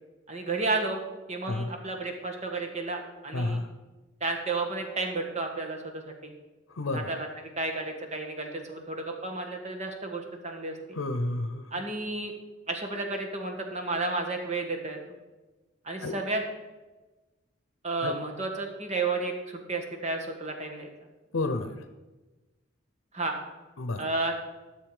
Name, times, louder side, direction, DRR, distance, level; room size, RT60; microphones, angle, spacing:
voice 1, 0.3-1.0 1.3-3.6 4.2-6.3 6.9-11.0 11.7-12.3 12.7-15.0 15.8-16.4 17.8-20.9 23.1-23.4 24.0-24.3, right 3 dB, 35° right, 3 dB, 1.5 m, -32 dB
voice 2, 3.3-3.7 6.7-7.1 10.9-11.7 16.0-16.1 18.0-18.2 21.3-21.7 23.8-24.1, left 2 dB, 85° left, 8 dB, 0.8 m, -30 dB
12.5 x 6.9 x 4.9 m, 1.2 s
head